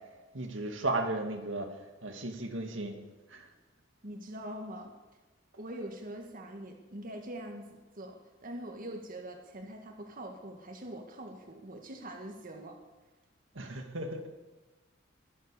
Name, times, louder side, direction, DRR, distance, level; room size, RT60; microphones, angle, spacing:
voice 1, 0.3-1.7 2.0-3.0 3.3-3.5 13.6-14.3, right 2 dB, 75° right, 4 dB, 2.0 m, -35 dB
voice 2, 4.0-5.0 5.6-12.8, right 1 dB, 45° right, 3 dB, 1.7 m, -43 dB
21.0 x 8.0 x 6.9 m, 1.2 s
head